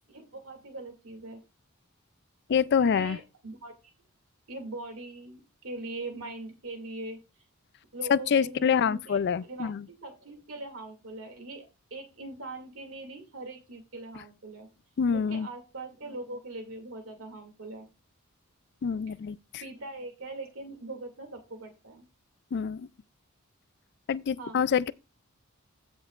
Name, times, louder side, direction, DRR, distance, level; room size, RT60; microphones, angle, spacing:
voice 1, 0.1-1.4 2.8-3.7 4.5-7.2 7.9-9.7 10.0-14.7 15.1-17.9 19.1-19.2 19.6-22.1 24.4-24.7, right 2 dB, 80° right, 2.5 m, -41 dB
voice 2, 2.5-3.2 8.1-9.9 15.0-15.5 18.8-19.4 22.5-22.9 24.1-24.9, left 7 dB, 55° left, 0.4 m, -26 dB
15.5 x 6.3 x 2.5 m
head